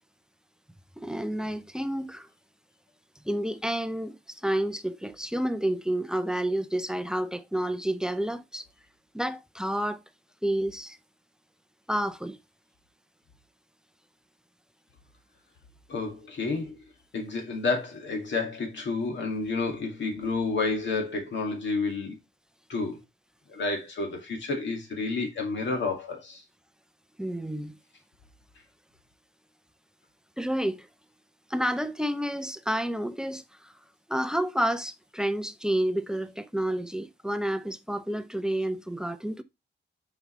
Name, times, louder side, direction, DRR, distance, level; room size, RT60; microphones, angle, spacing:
voice 1, 1.0-2.3 3.3-8.7 9.1-10.0 10.4-11.0 11.9-12.4 27.2-27.8 30.4-30.9 31.5-33.7 34.1-39.4, right 1 dB, 5° right, 0.4 m, -30 dB
voice 2, 15.9-16.8 17.1-22.2 22.7-23.0 23.5-26.4, left 3 dB, 65° left, 2.0 m, -30 dB
6.9 x 5.1 x 3.0 m
wide cardioid pair, 170°, 20 cm